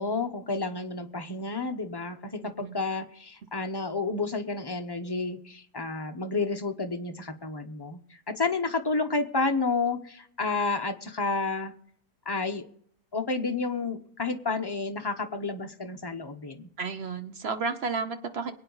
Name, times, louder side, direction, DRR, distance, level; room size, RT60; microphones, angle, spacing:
voice 1, 0.0-11.7 12.2-12.7 13.1-16.7, left 3 dB, 20° left, 5 dB, 0.6 m, -30 dB
voice 2, 16.8-18.5, right 4 dB, 45° right, 9 dB, 1.0 m, -32 dB
23.0 x 8.8 x 4.0 m, 0.64 s
omnidirectional pair, 1.7 m